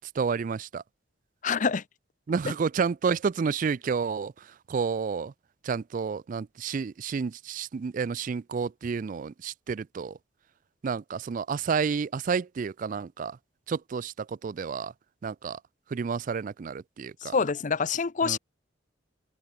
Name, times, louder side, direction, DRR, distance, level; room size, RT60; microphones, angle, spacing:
voice 1, 0.2-0.8 2.3-4.3 4.7-5.3 5.6-10.2 10.8-13.4 13.7-14.9 15.2-15.6 15.9-17.3 18.2-18.4, right 5 dB, 45° right, 0.3 m, -30 dB
voice 2, 1.4-1.8 17.2-18.4, left 5 dB, 40° left, 0.6 m, -26 dB
open air
head